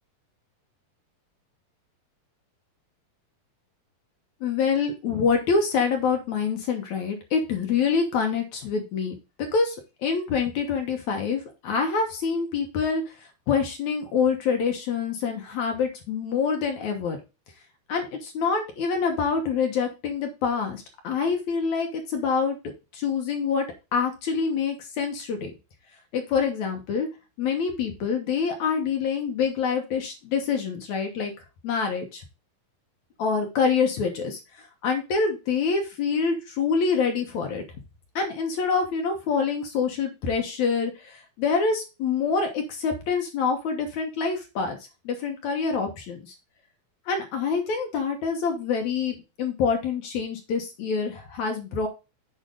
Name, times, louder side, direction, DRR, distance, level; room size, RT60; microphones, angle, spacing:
voice 1, 4.4-13.2 13.5-17.2 17.9-22.6 22.9-23.6 23.9-25.5 26.1-27.1 27.4-31.3 31.6-32.2 33.2-37.6 38.2-44.8 45.1-46.4 47.1-51.9, left 5 dB, 65° left, 3 dB, 2.1 m, -26 dB
8.3 x 5.0 x 3.8 m, 0.28 s
omnidirectional pair, 4.4 m